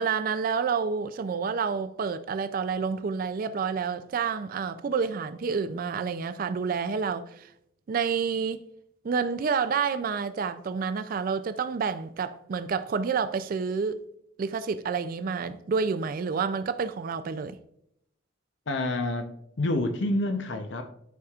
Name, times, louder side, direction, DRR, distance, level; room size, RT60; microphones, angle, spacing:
voice 1, 0.0-7.5 7.9-8.6 9.0-14.0 14.4-17.6, right 5 dB, 45° right, 0.3 m, -29 dB
voice 2, 18.7-20.9, left 2 dB, 65° left, 0.7 m, -28 dB
11.0 x 4.9 x 2.4 m
head